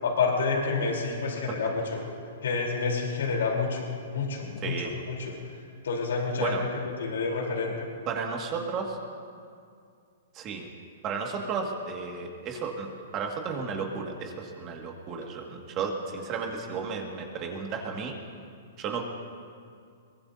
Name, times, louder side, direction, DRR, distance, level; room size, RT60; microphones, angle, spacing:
voice 1, 0.0-2.0 2.4-5.3 5.8-7.7, left 4 dB, 85° left, -1 dB, 3.9 m, -29 dB
voice 2, 8.1-9.0 10.3-10.7 11.0-12.9 13.1-18.1 18.8-19.0, right 5 dB, 30° right, 1 dB, 2.0 m, -33 dB
22.0 x 19.5 x 2.8 m, 2.3 s
hypercardioid pair, 145°, 0 cm